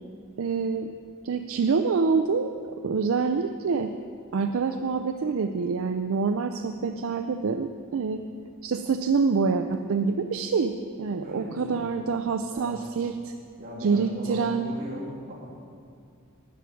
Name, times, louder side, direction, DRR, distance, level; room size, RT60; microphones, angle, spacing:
voice 1, 0.4-0.9 1.2-2.5 2.8-3.9 4.3-8.2 8.6-13.3 13.8-14.7, right 5 dB, 65° right, 7 dB, 0.4 m, -26 dB
voice 2, 11.2-11.9 12.5-12.7 13.6-15.3, equal, 45° right, -5 dB, 2.8 m, -38 dB
12.0 x 8.5 x 5.8 m, 2.3 s
head